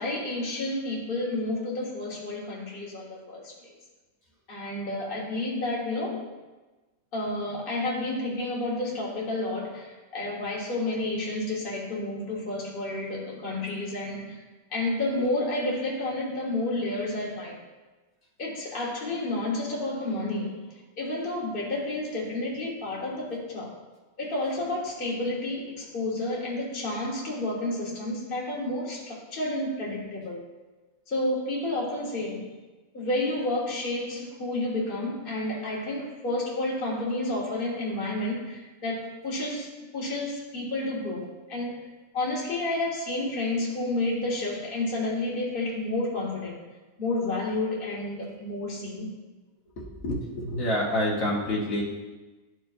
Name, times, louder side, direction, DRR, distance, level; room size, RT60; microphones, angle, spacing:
voice 1, 0.0-3.7 4.5-6.3 7.1-14.4 14.7-17.6 18.4-20.6 21.0-23.7 24.2-30.4 31.1-32.5 32.9-41.9 42.1-46.6 47.0-49.1, left 2 dB, 40° left, -4 dB, 1.6 m, -30 dB
voice 2, 49.8-51.8, left 1 dB, 70° left, -4 dB, 1.7 m, -28 dB
13.0 x 4.6 x 2.6 m, 1.2 s
omnidirectional pair, 1.5 m